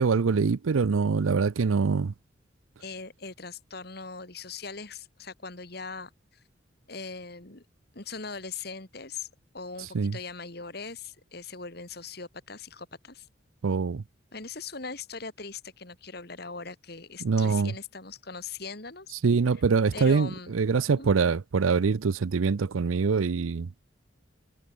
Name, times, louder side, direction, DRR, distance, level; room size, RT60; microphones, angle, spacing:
voice 1, 0.0-2.1 9.9-10.2 13.6-14.0 17.2-17.7 19.2-23.7, right 5 dB, 85° right, 0.5 m, -24 dB
voice 2, 2.8-6.4 6.9-7.6 7.9-9.3 9.5-13.3 14.3-19.1 19.9-20.5 20.9-21.1, left 4 dB, 50° left, 2.4 m, -40 dB
head